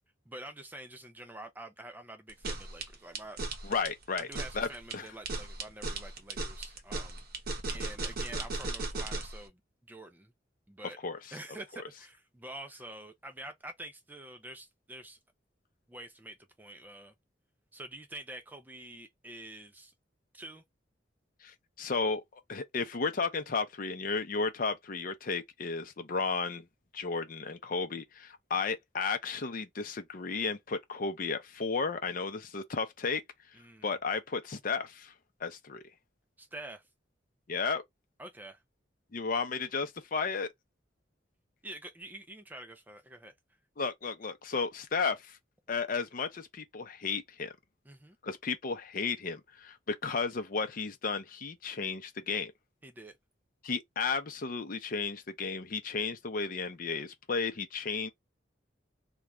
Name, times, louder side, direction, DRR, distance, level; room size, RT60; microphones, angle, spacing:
voice 1, 0.3-3.4 4.3-7.2 7.7-9.6 9.9-10.3 10.7-11.0 11.3-15.2 15.9-17.1 17.7-19.9 20.3-20.6 33.5-33.9 36.4-36.9 38.2-38.6 41.6-43.3 47.9-48.2 52.8-53.2, right 1 dB, 10° right, 0.4 m, -47 dB
sound 1, 2.3-9.4, right 2 dB, 55° right, 0.8 m, -36 dB
voice 2, 3.6-4.3 4.5-4.7 4.9-5.1 11.0-11.4 21.4-26.6 26.9-33.2 33.8-35.1 35.4-35.8 37.5-37.8 39.1-40.5 43.8-45.4 45.7-47.5 48.2-52.5 53.6-58.1, left 4 dB, 50° left, 0.6 m, -33 dB
2.4 x 2.2 x 3.0 m
head